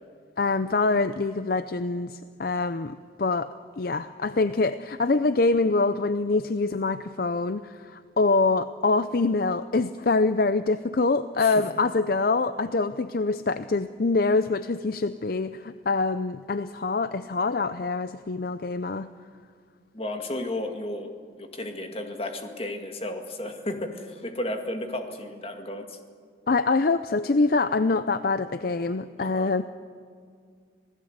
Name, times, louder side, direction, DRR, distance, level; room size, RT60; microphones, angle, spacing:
voice 1, 0.4-19.1 26.5-29.6, left 3 dB, 50° left, 12 dB, 0.5 m, -25 dB
voice 2, 19.9-21.1 21.4-26.0 29.2-29.5, left 1 dB, 30° left, 5 dB, 2.0 m, -33 dB
26.5 x 17.5 x 8.0 m, 2.1 s
head